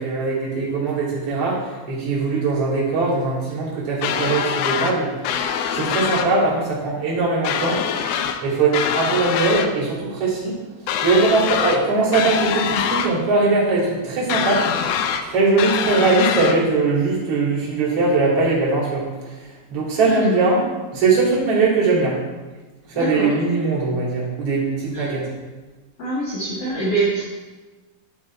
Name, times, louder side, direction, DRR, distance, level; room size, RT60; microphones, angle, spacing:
voice 1, 0.0-5.4 5.7-7.8 8.4-10.6 11.0-15.0 15.2-20.6 20.9-22.2 22.9-25.3, right 3 dB, 40° right, -5 dB, 2.9 m, -21 dB
sound 1, 4.0-4.9 5.2-6.3 7.4-8.4 8.7-9.7 10.9-11.8 12.1-13.1 14.3-15.2 15.6-16.6, left 8 dB, 85° left, 2.5 m, -23 dB
voice 2, 22.9-23.3 24.9-25.2 26.0-27.2, right 2 dB, 55° left, -7 dB, 1.9 m, -24 dB
11.5 x 4.7 x 4.3 m, 1.2 s
omnidirectional pair, 4.6 m